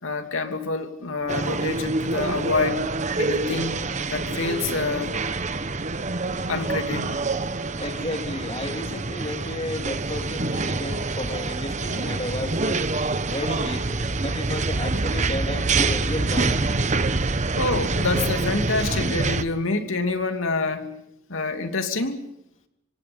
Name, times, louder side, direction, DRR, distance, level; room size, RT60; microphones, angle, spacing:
voice 1, 0.0-2.8 3.2-3.8 4.1-5.1 6.5-7.2 17.6-20.9 21.3-22.3, left 3 dB, 80° left, 5 dB, 2.8 m, -27 dB
sound 1, 1.3-19.4, right 3 dB, 35° right, 1.0 m, -26 dB
voice 2, 7.8-12.8 13.2-16.8, left 1 dB, 30° left, 5 dB, 2.3 m, -33 dB
27.0 x 25.5 x 5.4 m, 0.81 s
head